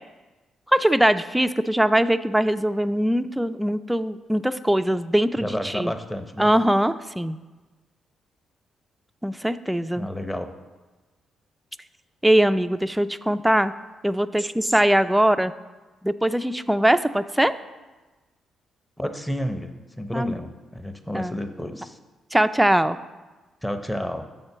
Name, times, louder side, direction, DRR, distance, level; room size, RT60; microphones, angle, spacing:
voice 1, 0.7-5.9 6.4-7.4 9.2-10.1 12.2-13.7 14.0-15.5 16.0-17.5 20.1-20.4 21.1-21.4 22.3-23.0, right 1 dB, 5° right, 11 dB, 0.4 m, -21 dB
voice 2, 5.4-6.5 9.9-10.5 19.0-22.0 23.6-24.3, equal, 10° left, 7 dB, 0.8 m, -31 dB
6.8 x 4.3 x 6.7 m, 1.2 s
hypercardioid pair, 50°, 0 cm